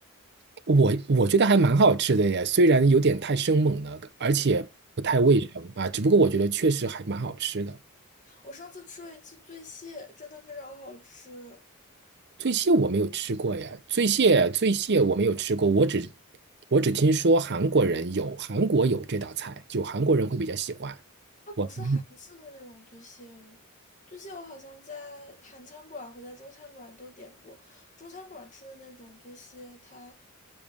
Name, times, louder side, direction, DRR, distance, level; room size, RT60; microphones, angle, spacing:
voice 1, 0.7-4.7 5.0-7.8 12.4-16.1 16.7-20.9 21.6-22.0, right 3 dB, 50° right, 0.6 m, -23 dB
voice 2, 8.2-11.6 21.5-23.6 24.1-30.2, left 2 dB, 35° left, 1.3 m, -46 dB
7.3 x 4.9 x 5.1 m
head